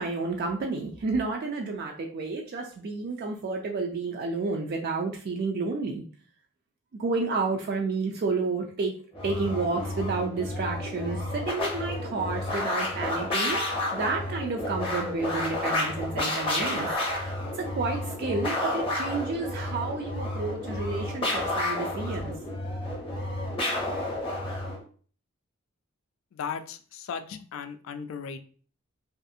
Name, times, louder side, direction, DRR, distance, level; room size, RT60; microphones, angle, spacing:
voice 1, 0.0-6.0 6.9-13.6 13.9-22.3, right 3 dB, 50° right, 2 dB, 0.3 m, -31 dB
sound 1, 9.1-24.8, left 1 dB, 25° left, 0.7 m, -31 dB
voice 2, 26.3-28.4, left 6 dB, 70° left, 10 dB, 0.3 m, -36 dB
2.4 x 2.4 x 2.6 m, 0.43 s
head